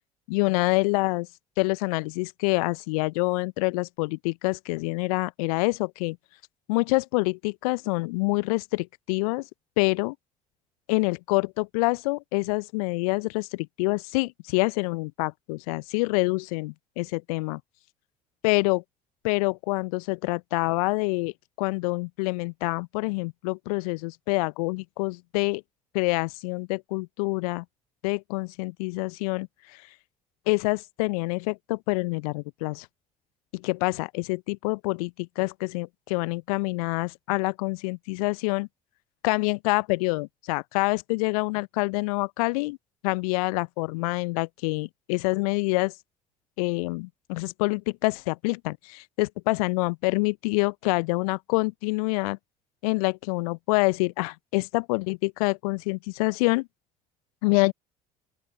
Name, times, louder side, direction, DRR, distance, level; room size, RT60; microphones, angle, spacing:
voice 1, 0.3-1.3 1.6-6.2 6.7-9.5 9.8-10.2 10.9-17.6 18.4-18.8 19.2-21.3 21.6-25.6 25.9-27.6 28.0-29.8 30.5-32.9 33.5-38.7 39.2-42.8 43.0-45.9 46.6-52.4 52.8-56.7 57.4-57.7, left 27 dB, 65° left, 0.8 m, -26 dB
open air
figure-of-eight pair, 60°, 20 cm